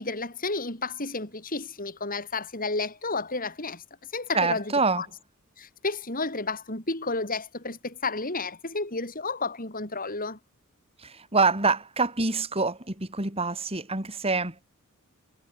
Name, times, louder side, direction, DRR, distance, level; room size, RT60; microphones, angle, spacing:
voice 1, 0.0-3.8 4.1-5.1 5.6-10.4, left 3 dB, 40° left, 7.6 m, -31 dB
voice 2, 4.3-5.0 11.0-14.6, right 3 dB, 25° right, 4.4 m, -26 dB
head